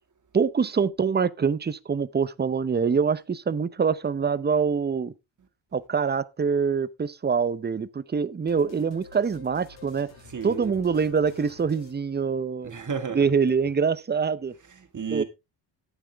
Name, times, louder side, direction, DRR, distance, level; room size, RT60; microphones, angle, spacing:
voice 1, 0.3-5.1 5.7-10.1 10.4-12.7 13.1-14.5 15.1-15.2, right 6 dB, 20° right, 0.6 m, -25 dB
sound 1, 8.5-12.8, left 4 dB, 70° left, 5.1 m, -50 dB
voice 2, 10.3-10.7 12.6-13.3 14.7-15.2, right 6 dB, 40° right, 2.1 m, -32 dB
11.5 x 8.9 x 3.4 m
cardioid pair, 95°, 46 cm